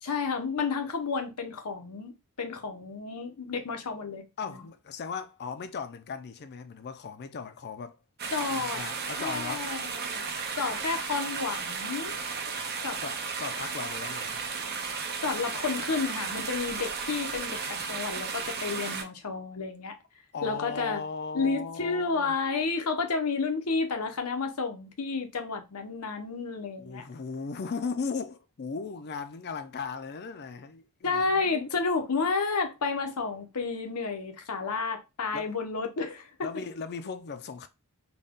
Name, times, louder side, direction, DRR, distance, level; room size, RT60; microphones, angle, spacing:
voice 1, 0.0-4.2 8.3-8.8 9.2-10.3 10.6-12.2 12.8-13.0 15.2-20.0 20.4-21.0 21.3-27.0 31.0-36.5, left 4 dB, 85° left, 0.8 m, -31 dB
voice 2, 4.4-8.0 8.5-9.7 13.0-14.4 20.3-22.3 26.8-31.8 35.3-35.5 36.4-37.7, left 5 dB, 50° left, 0.5 m, -37 dB
sound 1, 8.2-19.0, right 5 dB, 45° right, 0.7 m, -34 dB
4.0 x 2.2 x 3.5 m
head